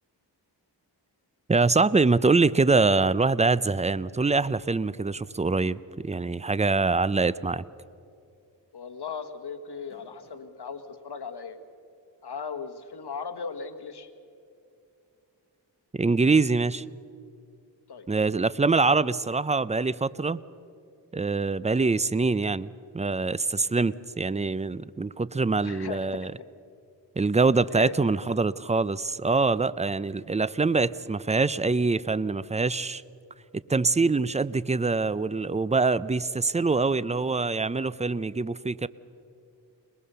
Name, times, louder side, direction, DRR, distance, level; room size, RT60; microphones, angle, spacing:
voice 1, 1.5-7.6 15.9-16.8 18.1-20.4 21.1-26.3 27.2-33.0 33.7-38.9, right 3 dB, 15° right, 18 dB, 0.5 m, -24 dB
voice 2, 8.7-11.6 12.2-14.1 17.9-18.0 25.6-26.3 27.7-27.9, left 5 dB, 65° left, 8 dB, 1.5 m, -37 dB
sound 1, 9.6-10.6 11.3-11.4 13.0-13.1, left 1 dB, 15° left, 8.0 m, -58 dB
22.5 x 21.0 x 6.8 m, 2.5 s
cardioid pair, 60°, 43 cm